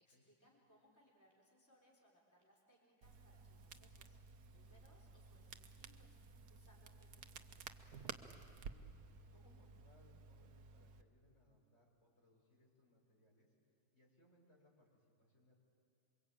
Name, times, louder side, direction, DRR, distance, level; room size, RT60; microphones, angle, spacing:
voice 1, 0.0-7.9, equal, 10° left, -4 dB, 3.6 m, -72 dB
Crackle, 3.0-11.0, right 5 dB, 75° right, 1.5 m, -55 dB
voice 2, 8.7-9.0 9.3-13.5 13.9-15.5, left 1 dB, 45° left, -3 dB, 6.3 m, -71 dB
27.5 x 23.5 x 8.7 m, 2.5 s
omnidirectional pair, 1.7 m